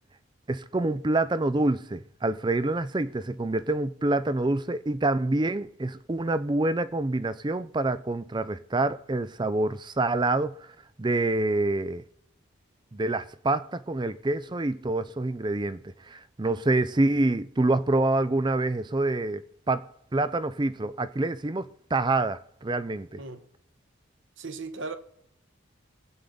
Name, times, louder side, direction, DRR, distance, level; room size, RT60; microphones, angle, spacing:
voice 1, 0.5-10.7 11.0-12.0 12.9-23.2, right 2 dB, 20° right, 0.4 m, -27 dB
voice 2, 24.4-25.0, right 3 dB, 60° right, 1.2 m, -36 dB
25.0 x 8.5 x 3.8 m
head